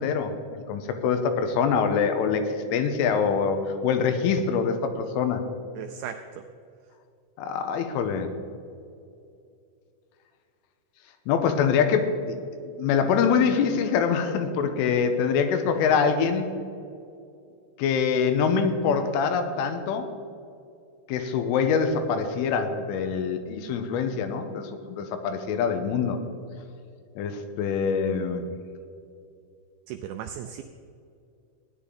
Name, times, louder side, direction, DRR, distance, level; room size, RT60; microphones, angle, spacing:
voice 1, 0.0-5.4 7.4-8.3 11.3-12.4 12.6-16.6 17.8-20.1 21.1-26.2 27.2-28.5, left 6 dB, 85° left, 7 dB, 3.3 m, -24 dB
voice 2, 5.8-6.4 29.9-30.6, right 9 dB, 90° right, 7 dB, 2.6 m, -36 dB
16.5 x 10.0 x 3.8 m, 2.5 s
omnidirectional pair, 5.7 m